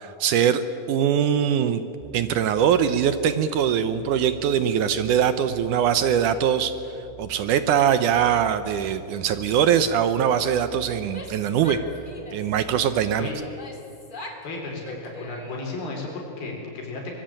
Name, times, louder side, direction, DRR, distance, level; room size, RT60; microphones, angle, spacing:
voice 1, 0.0-1.8 2.1-6.8 7.2-11.8 12.3-13.3, right 8 dB, 75° right, 12 dB, 1.9 m, -22 dB
sound 1, 2.0-13.3, right 3 dB, ahead, 4.5 m, -47 dB
Female speech woman speaking / Yell, 11.0-12.6 13.2-14.5 14.8-15.8, left 1 dB, 20° left, 1.4 m, -40 dB
voice 2, 14.2-17.2, left 3 dB, 75° left, -1 dB, 6.0 m, -34 dB
24.5 x 20.5 x 8.9 m, 2.8 s
omnidirectional pair, 4.4 m